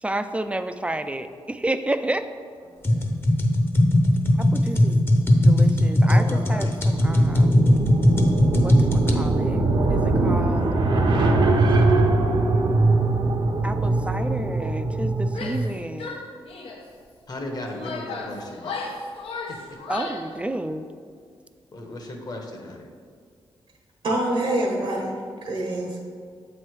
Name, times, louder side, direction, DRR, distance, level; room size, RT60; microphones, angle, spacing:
voice 1, 0.0-2.3 4.4-5.0 5.4-7.7 8.6-10.7 13.6-16.2 19.9-20.9, right 1 dB, 15° right, 10 dB, 0.3 m, -31 dB
voice 2, 2.7-3.1 6.0-6.8 17.3-18.9 21.7-22.8, left 1 dB, 45° left, 2 dB, 1.0 m, -36 dB
sound 1, 2.8-9.2, left 1 dB, 25° left, 0.7 m, -19 dB
sound 2, 6.9-15.7, right 2 dB, 55° right, 0.7 m, -22 dB
Female speech woman speaking / Yell, 15.3-15.7 16.0-16.9 17.5-20.3, left 3 dB, 85° left, 0.7 m, -35 dB
voice 3, 24.0-25.1 25.4-26.0, right 1 dB, 75° right, -1 dB, 1.1 m, -25 dB
7.5 x 3.2 x 4.6 m, 2.1 s
cardioid pair, 85°, 9 cm